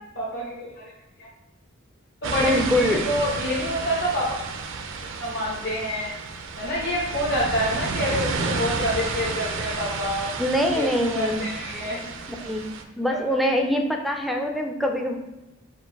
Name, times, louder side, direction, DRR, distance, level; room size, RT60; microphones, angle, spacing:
voice 1, 0.1-0.9 1.2-1.3 2.2-4.3 5.2-6.1 6.6-10.3 10.7-12.1 13.1-13.3, equal, 55° left, -7 dB, 0.9 m, -27 dB
sound 1, 2.2-12.8, right 4 dB, 65° right, 0.4 m, -31 dB
voice 2, 2.4-3.1 10.4-11.5 12.4-12.7 13.0-15.2, left 1 dB, ahead, 3 dB, 0.4 m, -24 dB
4.5 x 2.5 x 4.5 m, 0.99 s
head